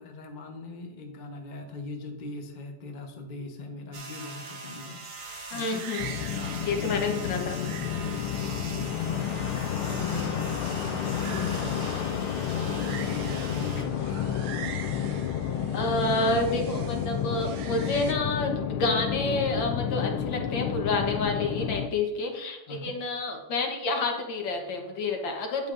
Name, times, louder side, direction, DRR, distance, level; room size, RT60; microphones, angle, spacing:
voice 1, 0.0-5.0 5.5-5.9 6.4-7.0 8.3-8.9 9.7-12.0 12.6-14.5 22.7-22.9, left 2 dB, 35° left, 2 dB, 0.8 m, -40 dB
sound 1, 3.9-13.8, right 3 dB, 40° right, 1.2 m, -42 dB
sound 2, 5.2-18.1, right 8 dB, 75° right, 1.5 m, -45 dB
voice 2, 5.5-6.1 6.7-7.6 15.7-18.5 18.8-25.7, left 2 dB, 65° left, 2 dB, 1.9 m, -29 dB
sound 3, 6.0-21.9, left 9 dB, 85° left, 1.5 m, -30 dB
9.4 x 9.2 x 2.6 m, 1.1 s
omnidirectional pair, 2.3 m